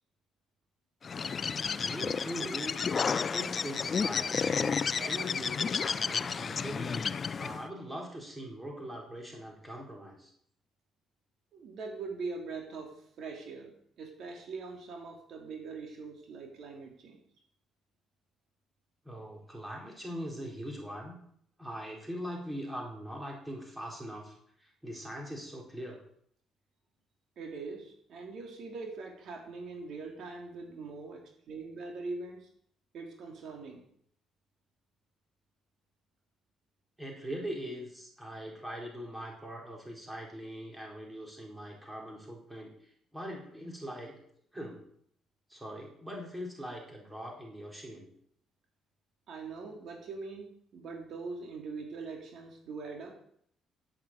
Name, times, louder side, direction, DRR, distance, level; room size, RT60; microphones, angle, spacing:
Bird, 1.0-7.7, left 6 dB, 40° left, 0.5 m, -31 dB
voice 1, 1.8-10.3 19.0-21.2 21.6-24.3 24.6-26.0 37.0-42.7 43.1-44.1 44.5-44.8 45.5-48.1, equal, 10° right, -1 dB, 4.5 m, -41 dB
voice 2, 11.5-17.2 27.4-32.5 32.9-33.8 49.3-53.1, right 4 dB, 65° right, 1 dB, 2.9 m, -42 dB
10.5 x 8.4 x 7.7 m, 0.66 s
cardioid pair, 90°, 0 cm